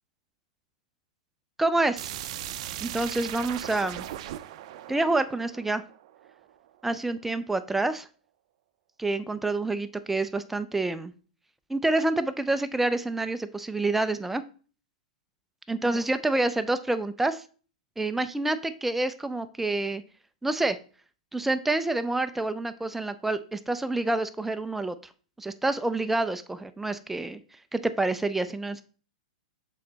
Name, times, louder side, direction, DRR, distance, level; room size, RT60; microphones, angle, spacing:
voice 1, 1.6-2.1 2.8-4.0 4.9-5.8 6.8-8.1 9.0-11.1 11.7-14.4 15.7-17.4 18.0-20.0 20.4-20.8 21.3-25.0 25.4-27.4 27.7-28.8, right 2 dB, 5° right, 11 dB, 0.4 m, -27 dB
sound 1, 2.0-6.7, right 12 dB, 55° right, 0.5 m, -38 dB
6.5 x 4.0 x 3.9 m, 0.40 s
hypercardioid pair, 125°, 4 cm